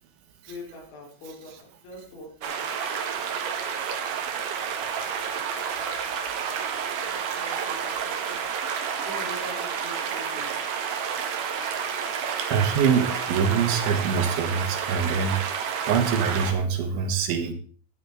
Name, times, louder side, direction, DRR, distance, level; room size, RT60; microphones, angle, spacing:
voice 1, 0.5-2.7 3.6-4.1 5.0-8.4 9.0-10.7, left 2 dB, 75° left, 0 dB, 6.2 m, -45 dB
sound 1, 2.4-16.5, right 7 dB, 60° right, 2.4 m, -30 dB
voice 2, 12.4-15.4 15.9-17.5, right 6 dB, 80° right, 5 dB, 4.2 m, -24 dB
14.5 x 12.5 x 3.7 m, 0.43 s
omnidirectional pair, 5.4 m